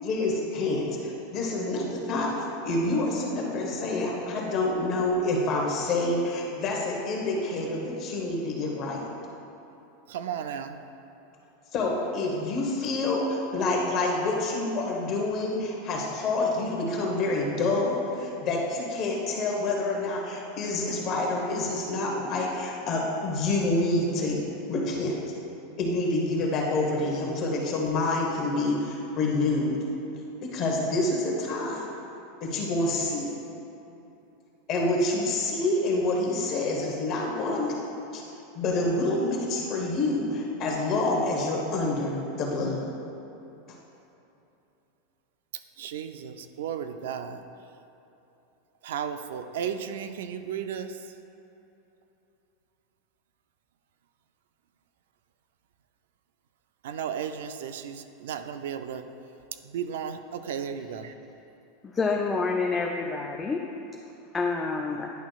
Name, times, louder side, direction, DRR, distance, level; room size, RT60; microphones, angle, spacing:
voice 1, 0.0-2.3 2.6-9.0 11.7-24.4 24.7-25.2 25.8-29.8 30.4-31.9 32.4-33.4 34.7-38.2 38.5-42.9, left 2 dB, 30° left, -1 dB, 1.1 m, -27 dB
voice 2, 10.1-10.8 45.8-47.4 48.8-50.9 56.8-59.0 59.6-61.1, right 8 dB, 80° right, 9 dB, 0.4 m, -34 dB
voice 3, 61.8-63.7 64.3-65.1, left 4 dB, 10° left, 0 dB, 0.3 m, -28 dB
10.5 x 6.0 x 2.4 m, 2.9 s
supercardioid pair, 170°, 0 cm